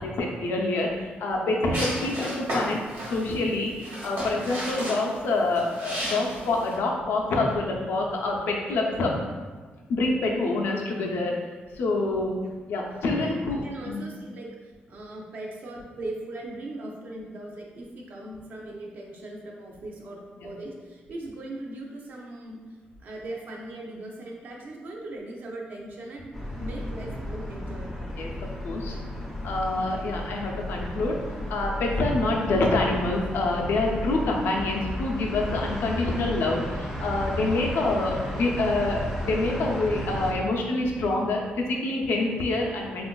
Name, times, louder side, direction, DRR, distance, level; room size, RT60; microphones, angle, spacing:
voice 1, 0.0-2.8 3.1-9.1 9.9-11.4 11.7-12.4 12.7-14.0 20.4-20.5 28.2-29.0 29.4-31.2 31.5-43.1, left 2 dB, 85° left, 0 dB, 0.5 m, -26 dB
sound 1, 1.7-6.8, equal, 85° right, 1.2 m, -33 dB
voice 2, 13.1-22.6 23.0-28.1 31.4-31.8, right 1 dB, 55° right, -1 dB, 0.5 m, -39 dB
sound 2, 26.3-40.3, left 1 dB, ahead, 0.4 m, -33 dB
3.6 x 2.4 x 2.2 m, 1.4 s
wide cardioid pair, 170°, 4 cm